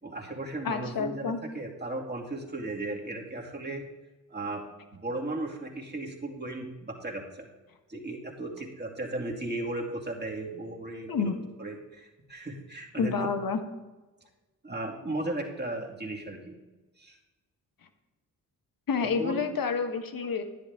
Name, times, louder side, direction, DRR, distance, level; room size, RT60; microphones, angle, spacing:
voice 1, 0.0-3.8 4.3-4.6 4.9-7.5 7.9-11.3 11.6-13.1 14.6-16.5 17.0-17.2 19.0-19.4, right 2 dB, 25° right, -1 dB, 2.6 m, -36 dB
voice 2, 0.6-1.4 11.1-11.3 13.0-13.6 18.9-20.4, left 5 dB, 55° left, 7 dB, 1.4 m, -29 dB
10.5 x 10.0 x 3.6 m, 1.1 s
hypercardioid pair, 45°, 42 cm